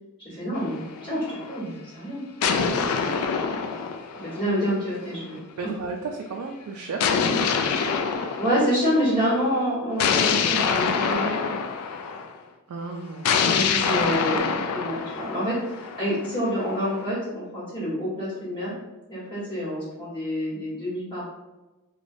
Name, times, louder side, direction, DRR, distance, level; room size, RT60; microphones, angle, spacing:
voice 1, 0.2-2.2 2.7-2.8 4.1-5.7 8.4-11.3 13.5-18.7 19.1-21.3, equal, 25° left, -10 dB, 1.4 m, -27 dB
sound 1, 0.5-1.6 2.4-5.0 7.0-9.1 10.0-12.3 13.2-17.0, left 6 dB, 80° left, 0.3 m, -26 dB
voice 2, 5.6-8.0 12.7-13.5, right 3 dB, 75° right, 1 dB, 0.3 m, -34 dB
3.3 x 2.2 x 2.5 m, 1.1 s
head